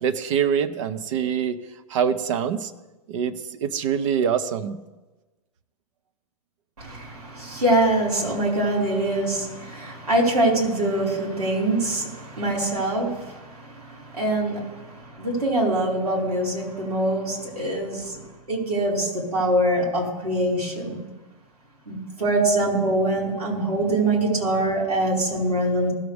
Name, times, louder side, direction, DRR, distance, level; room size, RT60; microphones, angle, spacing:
voice 1, 0.0-1.6 1.9-2.7 3.1-4.8, right 8 dB, 55° right, 11 dB, 0.8 m, -24 dB
voice 2, 6.8-18.2 18.5-21.0 21.9-25.9, right 1 dB, 85° right, -4 dB, 3.7 m, -24 dB
16.5 x 6.9 x 3.4 m, 1.2 s
hypercardioid pair, 110°, 19 cm